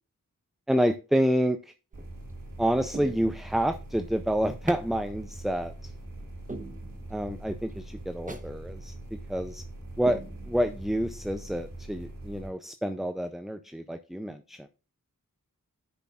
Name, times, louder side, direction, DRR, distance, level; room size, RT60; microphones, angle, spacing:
voice 1, 0.7-1.7 2.6-5.9 7.1-9.6 10.0-14.7, equal, ahead, 10 dB, 0.4 m, -28 dB
sound 1, 1.9-2.3 2.9-3.8 4.7-4.9 5.3-5.4 5.9-6.0 6.5-7.4 7.7-7.8 8.3-8.5 8.9-9.0 9.5-9.7 10.1-10.9 11.3-11.4, right 2 dB, 25° right, 1.0 m, -42 dB
sound 2, 1.9-12.5, right 1 dB, 85° right, 2.7 m, -42 dB
9.9 x 7.0 x 2.4 m, 0.32 s
wide cardioid pair, 70°, 33 cm